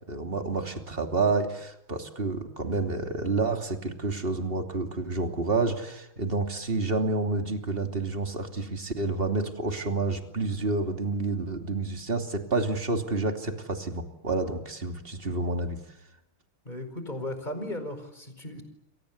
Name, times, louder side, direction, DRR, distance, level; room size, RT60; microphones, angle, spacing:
voice 1, 0.1-15.8, right 3 dB, 25° right, 5 dB, 3.0 m, -29 dB
voice 2, 16.7-18.6, left 1 dB, 20° left, 8 dB, 5.1 m, -36 dB
29.5 x 23.5 x 8.5 m, 0.83 s
omnidirectional pair, 2.3 m